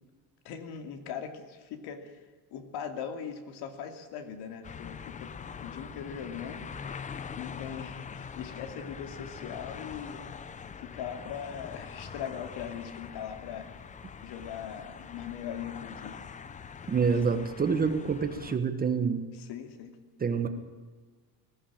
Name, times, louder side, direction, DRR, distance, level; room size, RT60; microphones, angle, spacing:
voice 1, 0.4-6.7 7.4-10.4 10.8-13.9 14.2-16.2 19.3-20.0, left 8 dB, 60° left, 7 dB, 2.7 m, -40 dB
sound 1, 4.6-18.6, left 6 dB, 20° left, 0.6 m, -43 dB
voice 2, 16.9-19.2 20.2-20.5, right 5 dB, 20° right, 9 dB, 1.2 m, -27 dB
20.0 x 15.0 x 8.8 m, 1.4 s
cardioid pair, 165°, 43 cm